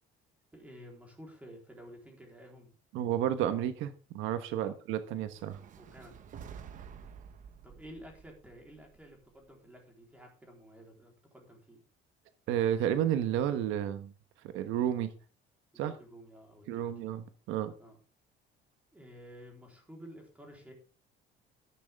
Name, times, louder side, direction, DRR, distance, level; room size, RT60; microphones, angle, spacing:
voice 1, 0.5-2.7 4.6-4.7 5.8-6.2 7.6-11.8 15.7-16.9 17.8-18.0 18.9-20.7, equal, 5° right, 1 dB, 3.9 m, -52 dB
voice 2, 2.9-5.6 12.5-14.1 14.5-15.1 15.8-16.0 16.7-17.7, right 10 dB, 80° right, 10 dB, 1.3 m, -31 dB
sound 1, 5.2-9.5, right 7 dB, 40° right, 1.1 m, -50 dB
12.0 x 11.5 x 3.6 m, 0.35 s
cardioid pair, 180°, 20 cm